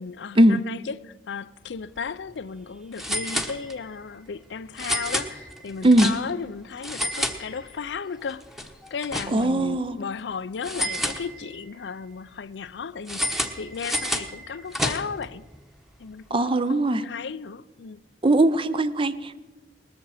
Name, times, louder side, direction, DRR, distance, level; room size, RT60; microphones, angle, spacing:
voice 1, 0.0-8.4 8.9-15.4 16.0-18.0, left 5 dB, 75° left, 0.5 m, -35 dB
sound 1, 1.8-2.0 2.3-2.4 3.0-4.0 4.8-6.5 6.8-8.0 8.3-9.7 10.6-11.7 13.1-15.3, equal, ahead, 1.0 m, -30 dB
voice 2, 9.3-10.0 16.3-17.0 18.2-19.4, right 1 dB, 30° right, 0.6 m, -20 dB
19.5 x 13.5 x 4.9 m
head